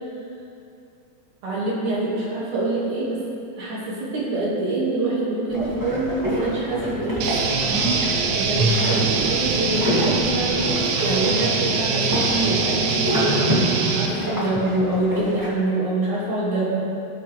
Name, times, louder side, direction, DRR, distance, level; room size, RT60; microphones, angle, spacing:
voice 1, 1.4-3.2 3.6-7.6 8.3-10.7 11.0-16.8, right 2 dB, 65° right, -6 dB, 3.7 m, -25 dB
sound 1, 5.5-15.5, equal, 5° right, 1.7 m, -27 dB
sound 2, 7.2-14.1, right 4 dB, 85° right, 2.5 m, -23 dB
17.5 x 7.6 x 3.4 m, 2.7 s
omnidirectional pair, 3.8 m